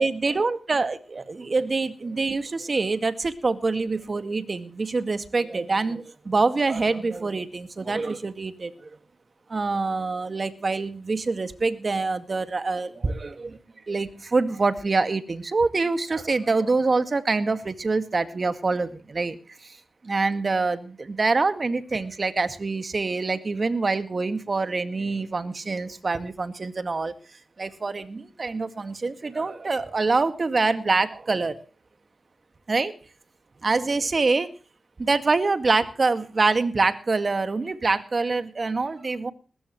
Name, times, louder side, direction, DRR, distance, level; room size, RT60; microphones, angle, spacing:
voice 1, 0.0-8.9 9.5-13.6 13.9-19.8 20.0-27.1 27.6-31.6 32.7-32.9 33.6-34.5 35.0-39.3, right 3 dB, 50° right, 10 dB, 2.0 m, -25 dB
20.5 x 15.5 x 3.2 m, 0.37 s
cardioid pair, 55°, 0 cm